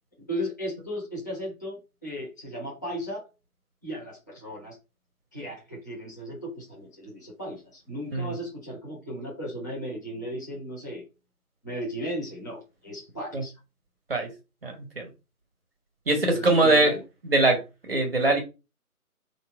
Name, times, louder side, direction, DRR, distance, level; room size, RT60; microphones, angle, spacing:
voice 1, 0.2-3.2 3.8-4.8 5.3-11.0 11.6-13.5 16.3-16.9, equal, 15° left, -5 dB, 0.7 m, -35 dB
voice 2, 14.6-15.1 16.1-16.9 17.3-17.6 17.8-18.4, right 2 dB, 40° right, 3 dB, 0.9 m, -22 dB
3.2 x 2.8 x 4.6 m, 0.29 s
figure-of-eight pair, 160°, 44 cm